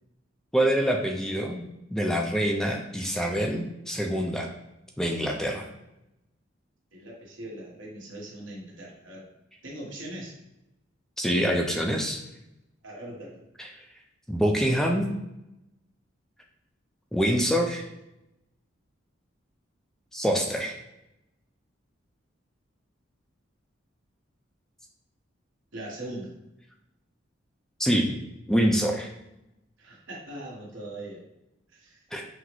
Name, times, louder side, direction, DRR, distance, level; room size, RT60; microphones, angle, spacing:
voice 1, 0.5-1.6 1.9-4.5 5.0-5.6 11.2-12.2 13.6-13.7 14.3-15.1 17.1-17.8 20.1-20.8 27.8-28.2 28.5-29.1 32.1-32.3, equal, 5° left, 1 dB, 0.4 m, -25 dB
voice 2, 6.9-9.3 9.6-10.3 12.8-13.4 25.7-26.3 29.8-31.2 31.7-32.0, right 1 dB, 75° right, -3 dB, 1.2 m, -40 dB
5.9 x 2.0 x 3.0 m, 0.89 s
head